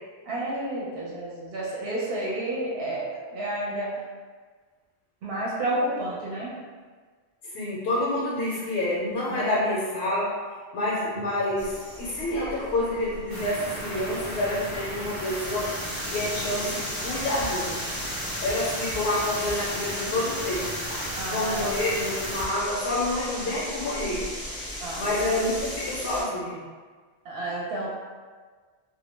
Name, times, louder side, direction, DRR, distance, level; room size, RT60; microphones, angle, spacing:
voice 1, 0.3-3.9 5.2-6.5 9.3-9.6 21.2-21.7 24.8-25.0 27.2-27.9, right 1 dB, 65° right, -5 dB, 0.8 m, -30 dB
voice 2, 7.4-10.3 10.7-11.7 12.0-15.7 16.1-17.8 18.4-20.9 21.2-24.3 25.0-26.6, left 1 dB, 75° left, -7 dB, 0.8 m, -28 dB
sound 1, 11.6-26.2, left 1 dB, 25° left, 0.5 m, -37 dB
sound 2, 13.3-22.5, right 1 dB, 30° right, 0.7 m, -35 dB
2.3 x 2.1 x 3.1 m, 1.5 s
omnidirectional pair, 1.1 m